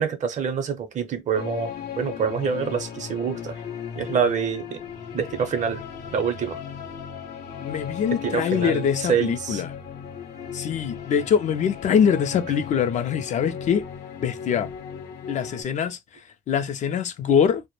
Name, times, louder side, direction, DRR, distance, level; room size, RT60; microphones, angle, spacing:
voice 1, 0.0-3.6 4.0-4.8 5.1-5.8 6.1-6.6 8.2-9.6, right 7 dB, 45° right, 0.6 m, -26 dB
sound 1, 1.3-15.6, left 8 dB, 75° left, 0.7 m, -36 dB
voice 2, 7.6-9.7 10.5-13.8 14.2-14.7 15.3-17.6, left 7 dB, 45° left, 0.4 m, -23 dB
2.1 x 2.0 x 3.0 m
cardioid pair, 110°, 17 cm